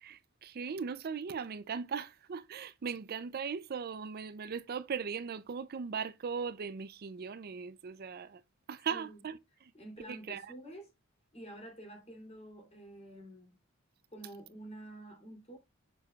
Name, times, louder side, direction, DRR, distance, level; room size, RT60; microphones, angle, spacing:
voice 1, 0.0-8.4 8.7-9.4 10.1-10.5, right 6 dB, 50° right, 0.4 m, -38 dB
voice 2, 8.9-9.2 9.7-10.9 11.3-13.6 14.1-15.6, right 1 dB, 30° left, 2.8 m, -49 dB
6.7 x 6.5 x 2.3 m
head